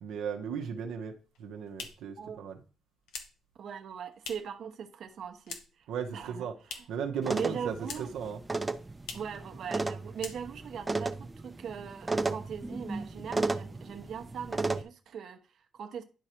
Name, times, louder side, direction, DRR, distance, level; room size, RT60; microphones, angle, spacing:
voice 1, 0.0-2.6 5.9-8.4, right 7 dB, 85° right, 1.0 m, -37 dB
sound 1, 1.2-4.7 4.9-5.9 6.2-7.1 7.4-8.3 8.6-8.7 9.0-9.4 9.7-9.9 10.1-10.8, left 5 dB, 90° left, 1.4 m, -45 dB
voice 2, 3.6-6.5 6.7-6.8 7.3-8.1 9.1-16.0, right 7 dB, 65° right, 1.0 m, -40 dB
sound 2, 7.2-14.8, right 3 dB, 20° right, 0.7 m, -34 dB
10.5 x 4.9 x 4.4 m
cardioid pair, 90°, 0 cm